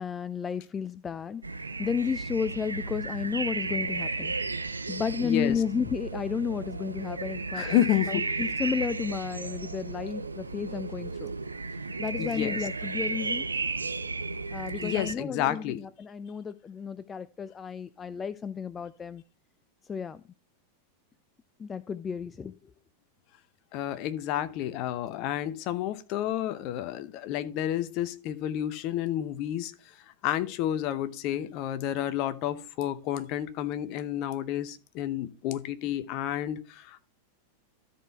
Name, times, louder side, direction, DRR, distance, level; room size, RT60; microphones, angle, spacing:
voice 1, 0.0-1.4 1.8-4.3 4.9-7.8 8.1-11.3 12.0-13.5 14.5-19.2 19.9-20.2 21.6-22.5, left 6 dB, 20° left, 0.3 m, -32 dB
sound 1, 1.4-15.1, right 3 dB, 80° right, 0.5 m, -34 dB
voice 2, 5.2-5.6 7.5-8.3 12.2-12.7 14.8-15.8 23.7-29.7 30.2-37.1, left 12 dB, 40° left, 0.8 m, -30 dB
13.0 x 4.4 x 4.5 m
figure-of-eight pair, 90°, 0 cm